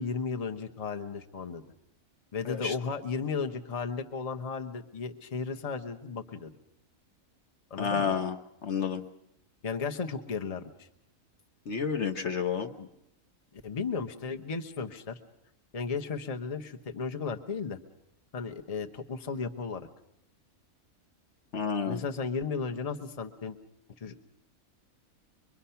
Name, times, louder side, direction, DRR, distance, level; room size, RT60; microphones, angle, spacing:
voice 1, 0.0-1.6 2.3-6.5 7.7-8.1 9.6-10.9 12.8-12.9 13.5-15.2 15.7-17.8 18.3-19.9 21.9-23.6 24.0-24.2, left 5 dB, 30° left, 5 dB, 0.9 m, -35 dB
voice 2, 7.8-8.3 8.6-9.0 11.7-12.7 21.5-22.0, left 6 dB, 55° left, 6 dB, 1.3 m, -30 dB
23.5 x 23.0 x 5.7 m, 0.81 s
omnidirectional pair, 1.5 m